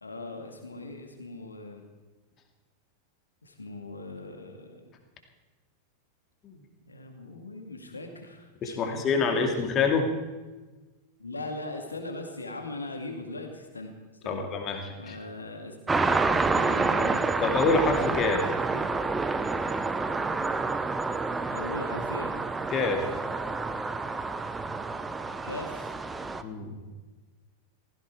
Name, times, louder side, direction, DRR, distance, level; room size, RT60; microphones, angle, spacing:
voice 1, 0.0-1.8 3.4-4.9 6.9-9.6 11.2-13.9 14.2-14.4 15.0-16.0 16.5-17.2 18.7-18.9 21.5-22.3 25.4-25.9, left 2 dB, 80° left, 4 dB, 2.3 m, -39 dB
voice 2, 8.6-10.1 14.3-15.2 17.4-18.5 22.7-23.1 26.3-26.8, left 4 dB, 30° left, 4 dB, 2.4 m, -26 dB
sound 1, 15.9-26.4, right 3 dB, 15° right, 0.7 m, -28 dB
16.0 x 15.5 x 4.8 m, 1.2 s
figure-of-eight pair, 90°, 0 cm